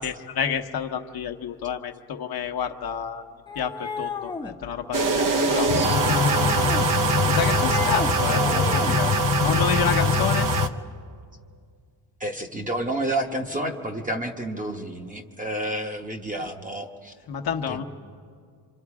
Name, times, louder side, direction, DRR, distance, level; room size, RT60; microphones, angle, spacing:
voice 1, 0.0-3.2 3.5-5.7 7.3-9.1 9.4-10.5 16.4-16.5 17.3-17.8, left 7 dB, 50° left, 4 dB, 1.2 m, -29 dB
sound 1, 3.5-4.5 5.5-6.9 7.2-8.1 8.4-9.0, left 5 dB, 10° left, 0.9 m, -33 dB
sound 2, 4.9-10.7, right 4 dB, 40° right, 0.9 m, -24 dB
Boat Water vehicle, 5.7-10.7, left 8 dB, 35° left, 0.5 m, -25 dB
voice 2, 8.3-9.0 12.2-17.1 17.7-17.8, right 1 dB, 15° right, 3 dB, 1.1 m, -30 dB
27.0 x 26.5 x 4.9 m, 2.1 s
cardioid pair, 165°, 48 cm